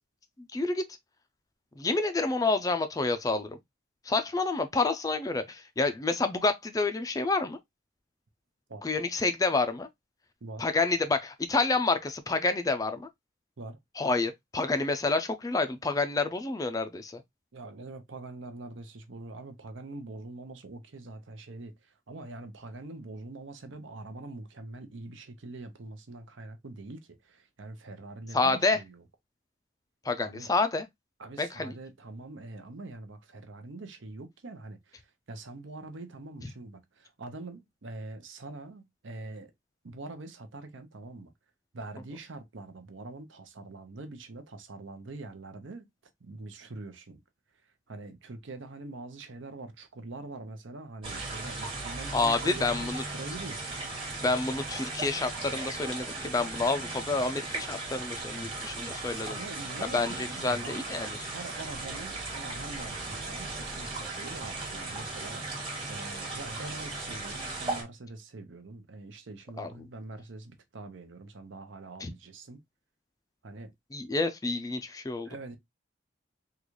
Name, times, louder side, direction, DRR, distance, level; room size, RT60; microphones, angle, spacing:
voice 1, 0.5-0.9 1.8-3.6 4.1-7.6 8.8-9.9 10.6-13.1 14.0-17.2 28.3-28.8 30.0-30.8 31.4-31.7 52.1-53.0 54.2-59.3 59.9-61.3 69.6-69.7 72.0-72.1 73.9-75.3, left 3 dB, 20° left, 0.3 m, -28 dB
voice 2, 17.5-29.0 30.3-30.5 31.2-39.5 39.8-41.3 41.7-45.9 46.2-47.2 47.9-53.8 58.4-58.5 59.2-72.6 73.4-73.7 75.2-75.6, right 2 dB, 75° right, 0.7 m, -44 dB
sound 1, 51.0-67.8, right 2 dB, 25° right, 1.1 m, -37 dB
3.8 x 2.3 x 3.0 m
head